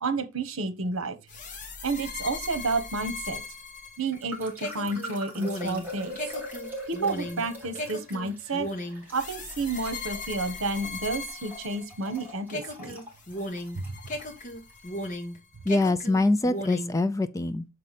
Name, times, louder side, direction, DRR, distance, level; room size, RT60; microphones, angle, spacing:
voice 1, 0.0-1.2 1.8-3.4 4.0-6.2 6.9-8.7 9.1-13.0 13.7-14.0, right 3 dB, 75° right, 1.1 m, -30 dB
sound 1, 1.3-12.2 12.5-15.4 15.7-17.0, left 1 dB, 35° left, 1.3 m, -37 dB
sound 2, 4.0-14.8, equal, 10° right, 3.0 m, -43 dB
voice 2, 15.7-17.7, left 2 dB, 15° left, 0.4 m, -24 dB
6.7 x 4.8 x 4.1 m
head